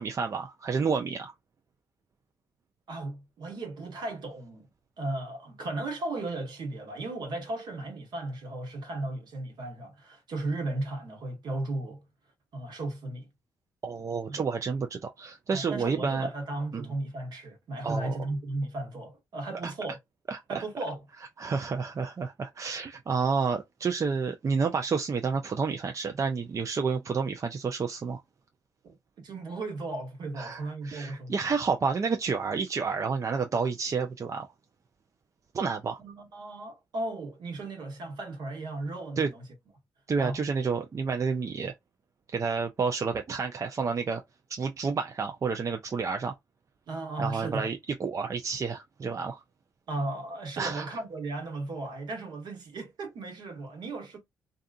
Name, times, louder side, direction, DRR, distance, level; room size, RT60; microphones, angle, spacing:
voice 1, 0.0-1.3 13.8-16.3 16.7-16.9 17.8-18.2 19.6-19.7 20.3-20.6 21.4-28.2 30.3-34.5 35.5-36.0 39.2-39.3 40.1-41.7 42.3-44.2 44.5-46.3 47.2-49.4 50.6-51.0, right 5 dB, 40° right, 0.5 m, -30 dB
voice 2, 2.9-4.7 5.0-12.0 12.5-13.3 14.3-14.4 15.5-20.0 20.5-21.0 28.8-31.3 36.0-39.4 40.2-40.4 46.9-47.7 49.9-54.2, right 2 dB, 60° right, 1.2 m, -35 dB
2.7 x 2.4 x 2.4 m
hypercardioid pair, 45°, 8 cm